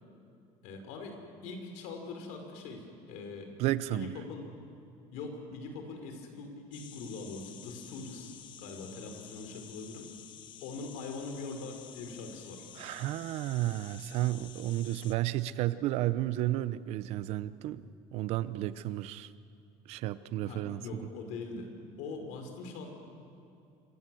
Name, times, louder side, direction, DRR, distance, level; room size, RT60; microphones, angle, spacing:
voice 1, 0.6-3.5 3.9-4.4 5.1-10.1 10.6-12.7 20.4-21.7 22.0-22.9, left 3 dB, 80° left, 4 dB, 5.3 m, -42 dB
voice 2, 3.6-4.1 12.8-17.8 18.1-19.3 19.9-21.1, right 15 dB, 55° right, 15 dB, 0.8 m, -32 dB
sound 1, 6.7-15.1, left 10 dB, 40° left, 1.2 m, -51 dB
27.0 x 25.0 x 7.9 m, 2.6 s
cardioid pair, 175°, 12 cm